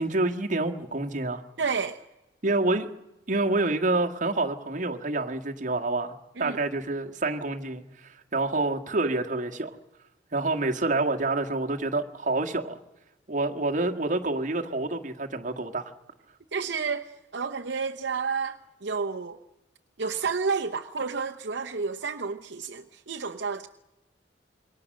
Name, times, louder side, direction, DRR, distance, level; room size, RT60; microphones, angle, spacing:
voice 1, 0.0-1.4 2.4-2.9 3.3-9.8 10.3-12.8 13.3-15.9, right 2 dB, 45° right, 1.7 m, -27 dB
voice 2, 1.6-2.0 6.4-6.6 16.5-19.4 20.0-23.7, right 5 dB, 70° right, 0.9 m, -30 dB
27.0 x 22.5 x 6.5 m
head